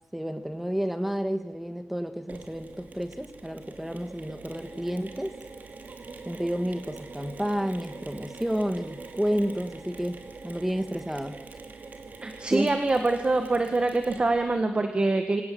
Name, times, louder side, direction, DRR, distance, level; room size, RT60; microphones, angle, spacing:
voice 1, 0.1-5.3 6.2-10.2 10.4-11.4 12.5-12.7, equal, 5° right, 8 dB, 1.7 m, -30 dB
Mechanisms, 2.3-14.6, right 4 dB, 45° right, 2.6 m, -44 dB
voice 2, 12.2-15.4, right 2 dB, 25° right, 6 dB, 1.6 m, -25 dB
26.0 x 18.0 x 7.8 m, 1.1 s
wide cardioid pair, 170°, 4 cm